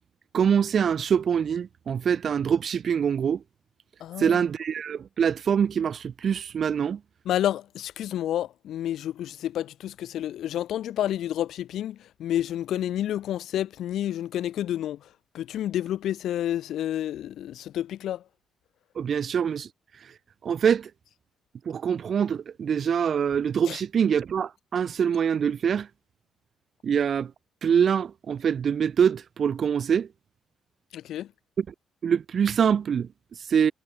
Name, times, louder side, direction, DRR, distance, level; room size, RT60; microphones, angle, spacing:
voice 1, 0.3-3.4 4.2-7.0 19.0-19.7 20.0-20.1 20.4-20.9 21.7-25.9 26.8-27.3 27.6-30.1 31.6-31.7 32.0-33.7, right 7 dB, 55° right, 2.0 m, -24 dB
voice 2, 4.0-4.4 7.2-15.1 15.3-18.2 23.7-23.8 30.9-31.3, left 11 dB, 75° left, 0.9 m, -30 dB
cardioid pair, 90°, 0 cm